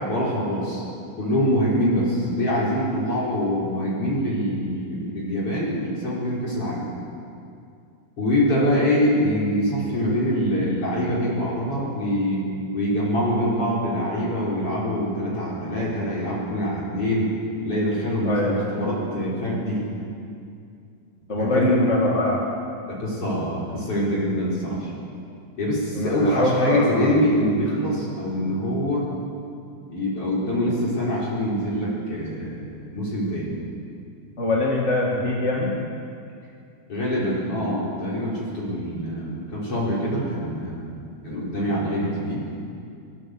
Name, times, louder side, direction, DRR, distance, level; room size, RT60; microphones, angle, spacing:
voice 1, 0.1-0.8 1.2-6.9 8.2-12.4 12.7-17.3 17.6-19.9 21.4-21.9 22.9-24.9 25.6-29.1 29.9-33.6 36.9-40.9 41.2-42.4, equal, 40° left, -5 dB, 5.3 m, -24 dB
voice 2, 18.3-18.7 21.3-22.4 26.0-27.2 34.4-35.7, left 2 dB, 25° left, -3 dB, 2.0 m, -23 dB
23.0 x 21.0 x 8.0 m, 2.4 s
omnidirectional pair, 4.0 m